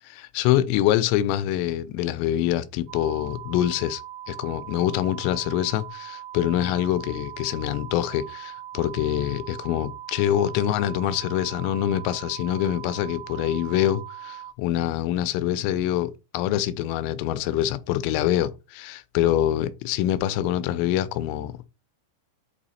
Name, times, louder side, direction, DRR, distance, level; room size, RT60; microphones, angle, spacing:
voice 1, 0.1-4.0 4.3-21.7, left 12 dB, 90° left, 3.2 m, -25 dB
sound 1, 2.9-14.5, right 11 dB, 80° right, 3.2 m, -40 dB
8.1 x 2.8 x 4.1 m
omnidirectional pair, 5.7 m